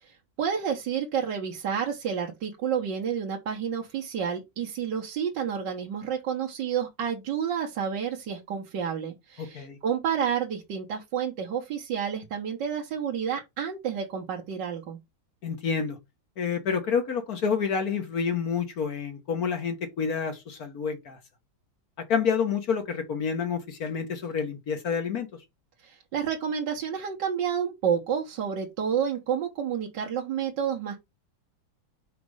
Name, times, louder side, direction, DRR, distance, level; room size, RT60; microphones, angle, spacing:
voice 1, 0.0-15.0 25.8-31.0, right 8 dB, 65° right, 1.7 m, -30 dB
voice 2, 9.4-9.8 15.4-16.0 16.4-21.2 22.0-25.3, left 6 dB, 50° left, 1.5 m, -28 dB
5.3 x 5.1 x 4.8 m
omnidirectional pair, 2.2 m